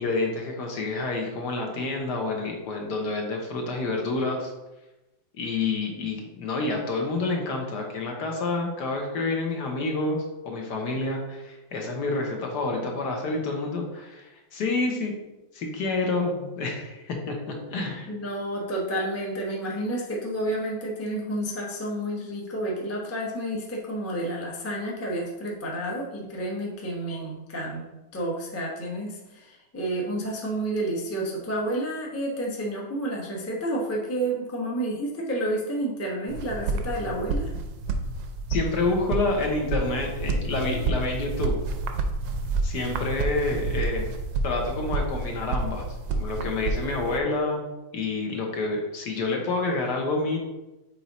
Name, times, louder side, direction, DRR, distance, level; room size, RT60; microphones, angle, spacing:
voice 1, 0.0-4.5 5.4-15.1 15.5-18.1 38.5-41.6 42.6-44.1 44.4-47.6 47.9-50.4, left 3 dB, 60° left, 1 dB, 1.4 m, -28 dB
voice 2, 18.1-27.8 28.1-37.5, right 1 dB, 15° left, -3 dB, 0.6 m, -30 dB
sound 1, 36.3-47.2, right 3 dB, 90° right, 1.5 m, -29 dB
5.3 x 4.6 x 4.1 m, 1.0 s
omnidirectional pair, 2.2 m